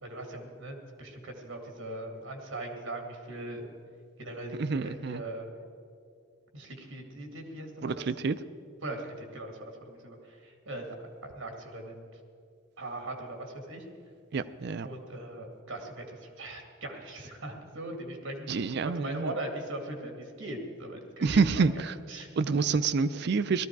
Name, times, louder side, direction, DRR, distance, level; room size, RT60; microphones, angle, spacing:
voice 1, 0.0-3.7 4.2-5.6 6.5-8.2 8.8-12.2 12.8-13.8 14.8-18.5 18.8-21.6 22.1-22.6, right 1 dB, 75° right, 3 dB, 2.3 m, -40 dB
voice 2, 4.6-5.2 7.8-8.3 14.3-14.9 18.5-19.3 21.2-21.7 22.4-23.7, right 4 dB, 55° right, 14 dB, 0.4 m, -27 dB
17.0 x 13.5 x 4.7 m, 2.5 s
head